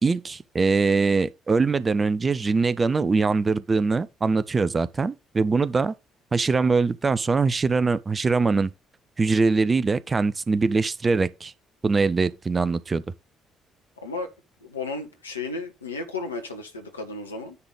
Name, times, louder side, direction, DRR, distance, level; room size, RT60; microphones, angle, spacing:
voice 1, 0.0-5.9 6.3-8.7 9.2-11.5 11.8-13.0, right 4 dB, 30° right, 0.7 m, -22 dB
voice 2, 14.0-14.3 14.6-17.6, left 3 dB, 85° left, 1.3 m, -33 dB
9.8 x 4.0 x 5.0 m
figure-of-eight pair, 45°, 0 cm